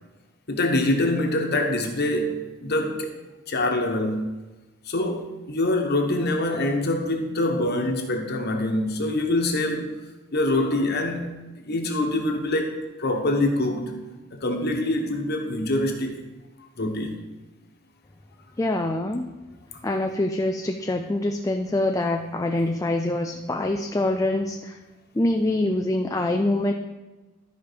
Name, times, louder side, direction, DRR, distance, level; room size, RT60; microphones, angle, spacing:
voice 1, 0.5-3.1 3.5-4.2 4.9-9.9 10.3-11.3 11.6-14.0 14.3-16.2 16.8-17.2, left 1 dB, 50° left, 2 dB, 1.3 m, -25 dB
voice 2, 18.6-19.3 19.8-24.8 25.1-26.7, left 1 dB, 15° left, 4 dB, 0.4 m, -25 dB
13.0 x 5.1 x 5.1 m, 1.2 s
head